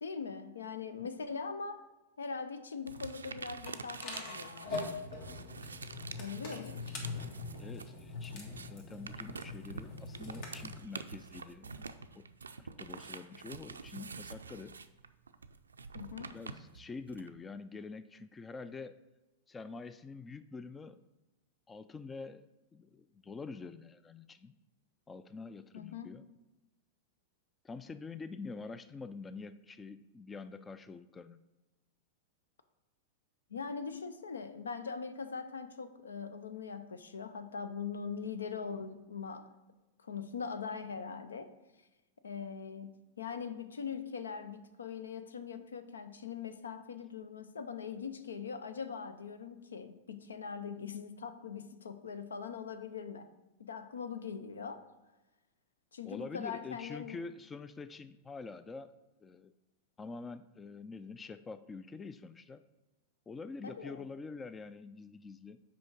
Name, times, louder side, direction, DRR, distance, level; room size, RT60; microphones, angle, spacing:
voice 1, 0.0-1.8 2.2-5.0 6.2-6.8 15.9-16.3 25.7-26.1 33.5-39.5 40.0-41.5 42.2-53.3 53.6-54.9 55.9-57.2 63.6-64.1, left 6 dB, 80° left, 10 dB, 0.5 m, -41 dB
sound 1, 2.9-7.9 8.2-17.3, right 4 dB, 85° right, 0.3 m, -47 dB
sound 2, 3.7-10.7, left 3 dB, 55° left, 1.5 m, -43 dB
voice 2, 7.6-12.3 12.8-14.8 16.3-19.0 19.5-21.0 21.7-22.5 22.7-24.6 25.1-26.2 27.6-31.4 56.0-58.9 59.2-59.5 60.0-62.6 63.3-65.6, left 4 dB, 20° left, 13 dB, 0.3 m, -46 dB
6.1 x 4.7 x 4.6 m, 1.1 s
hypercardioid pair, 100°, 0 cm